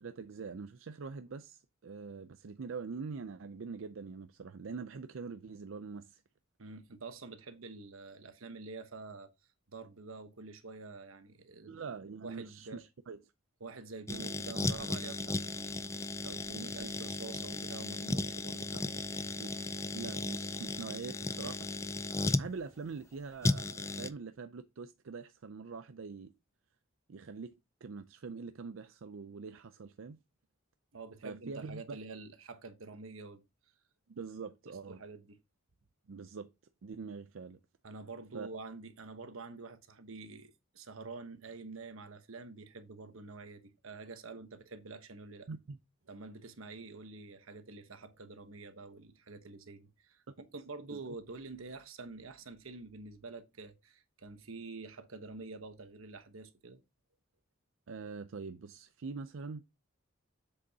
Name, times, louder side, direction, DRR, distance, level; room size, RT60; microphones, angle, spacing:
voice 1, 0.0-6.2 11.7-13.2 14.1-14.2 19.4-19.5 19.9-21.7 22.3-26.3 27.1-30.2 31.2-32.0 34.1-35.0 36.1-36.5 36.8-37.6 38.3-38.5 45.5-45.8 50.3-50.4 50.9-51.0 57.9-59.6, right 5 dB, 70° right, 0.5 m, -44 dB
voice 2, 6.6-9.3 9.7-11.7 12.2-12.8 13.6-15.8 16.2-19.3 30.9-33.4 34.9-35.4 37.8-45.5 46.1-56.8, right 3 dB, 90° right, 1.1 m, -47 dB
sound 1, 14.1-22.5 23.4-24.1, left 2 dB, 15° left, 0.4 m, -35 dB
7.6 x 6.7 x 2.8 m
head